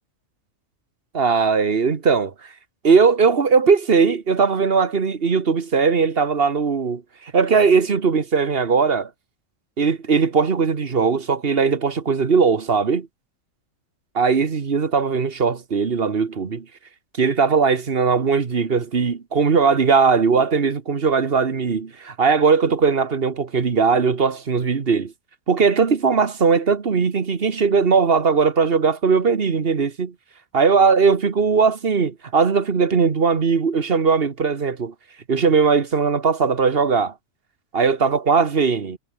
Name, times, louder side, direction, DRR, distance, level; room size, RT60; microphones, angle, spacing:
voice 1, 1.1-2.3 2.8-7.0 7.3-9.1 9.8-13.1 14.1-16.6 17.2-25.1 25.5-30.1 30.5-34.9 35.3-37.1 37.7-39.0, right 5 dB, 45° right, 1.5 m, -19 dB
omnidirectional pair, 1.4 m